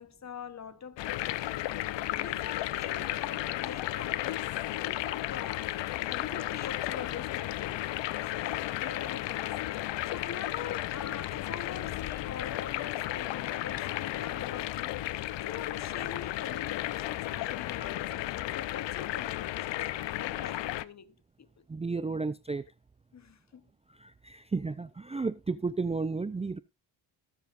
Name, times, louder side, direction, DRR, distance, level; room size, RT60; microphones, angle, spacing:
voice 1, 0.0-1.8 2.1-4.6 4.9-5.8 6.1-9.5 9.9-15.1 15.4-21.7 23.1-23.7, left 7 dB, 40° left, 0.9 m, -44 dB
sound 1, 1.0-20.8, left 15 dB, 75° left, 0.7 m, -34 dB
voice 2, 21.7-22.6 24.0-26.6, right 4 dB, 15° right, 0.5 m, -33 dB
19.5 x 7.3 x 2.5 m
cardioid pair, 80°, 43 cm